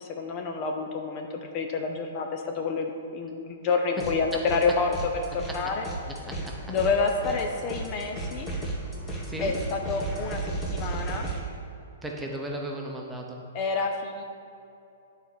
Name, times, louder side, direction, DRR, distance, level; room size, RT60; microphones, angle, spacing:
voice 1, 0.0-4.9 5.3-5.9 6.7-8.5 9.4-11.3 13.5-14.2, left 4 dB, 35° left, 3 dB, 0.7 m, -28 dB
sound 1, 4.0-4.7 4.9-11.4, right 2 dB, 20° left, 1.5 m, -34 dB
voice 2, 6.3-6.7 9.2-9.6 12.0-13.4, right 1 dB, 5° right, -1 dB, 0.9 m, -36 dB
9.0 x 4.2 x 6.2 m, 2.7 s
hypercardioid pair, 140°, 0 cm